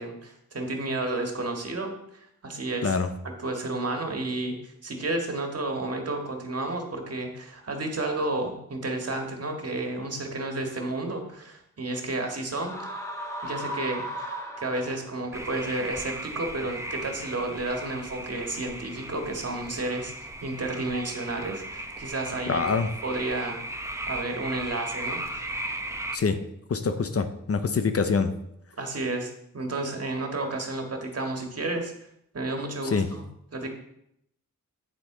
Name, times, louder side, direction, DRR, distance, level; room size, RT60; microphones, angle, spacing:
voice 1, 0.0-2.9 3.4-12.9 13.4-14.1 14.6-20.1 20.4-22.6 23.0-23.6 24.1-25.6 28.8-31.9 32.3-33.2 33.5-33.7, right 2 dB, 50° right, 3 dB, 1.7 m, -31 dB
sound 1, 12.6-15.2, right 1 dB, 10° left, 1.4 m, -36 dB
sound 2, 15.3-26.2, right 1 dB, 10° right, 0.7 m, -37 dB
voice 2, 22.5-22.9 26.1-26.4 26.7-28.3 32.8-33.1, left 5 dB, 45° left, 9 dB, 0.7 m, -25 dB
8.6 x 7.7 x 3.9 m, 0.75 s
wide cardioid pair, 95°, 32 cm